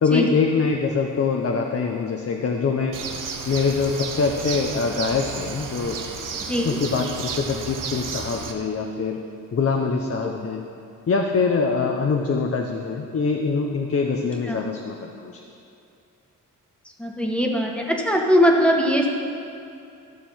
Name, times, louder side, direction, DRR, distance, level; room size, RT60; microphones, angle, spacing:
voice 1, 0.0-3.0 3.5-6.0 6.6-9.2 9.5-10.6 11.1-15.4, left 4 dB, 45° left, 2 dB, 0.8 m, -24 dB
Bird, 2.9-8.5, right 5 dB, 75° right, 1.1 m, -32 dB
voice 2, 6.4-6.8 10.2-10.3 14.4-14.6 17.0-19.1, equal, 5° left, 0 dB, 1.5 m, -20 dB
13.5 x 6.8 x 5.7 m, 2.6 s
cardioid pair, 90°, 32 cm